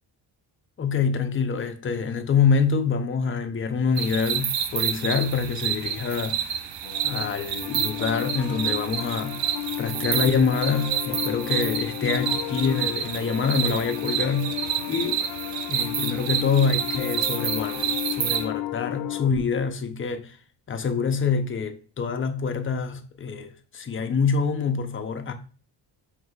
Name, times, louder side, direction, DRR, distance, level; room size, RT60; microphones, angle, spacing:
voice 1, 0.8-6.6 7.0-9.4 9.8-14.5 14.9-15.2 15.7-20.4 20.7-25.3, left 5 dB, 30° left, 0.6 m, -26 dB
sound 1, 4.0-18.5, right 9 dB, 75° right, 0.6 m, -29 dB
Piano, 6.8-19.3, left 16 dB, 85° left, 0.5 m, -33 dB
4.7 x 3.2 x 2.3 m
cardioid pair, 80°, 45 cm